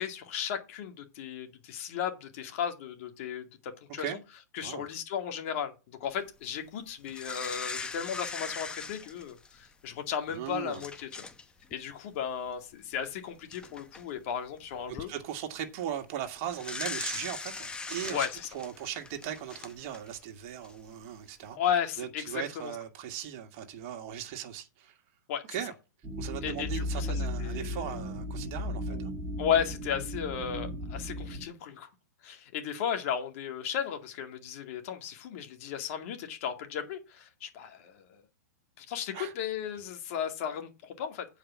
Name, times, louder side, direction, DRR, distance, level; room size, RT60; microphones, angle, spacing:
voice 1, 0.0-4.1 4.5-11.2 11.7-15.1 18.1-18.5 21.6-22.7 25.3-25.4 26.4-28.0 28.9-29.1 29.4-31.9 32.2-38.2 38.8-41.3, left 8 dB, 50° left, 2.2 m, -35 dB
sound 1, 7.1-9.7 10.3-10.4 10.7-11.4 11.7-11.9 13.0-13.1 13.5-14.0 14.7-15.0 16.5-20.2 20.6-20.7, left 4 dB, 10° left, 0.8 m, -40 dB
voice 2, 10.3-10.8 14.9-18.3 18.5-21.6 22.0-25.0 25.5-25.7 26.2-29.1 39.1-39.3, right 10 dB, 40° right, 1.7 m, -38 dB
sound 2, 26.0-31.5, left 1 dB, 10° right, 1.9 m, -35 dB
8.7 x 5.1 x 7.2 m
hypercardioid pair, 130°, 9 cm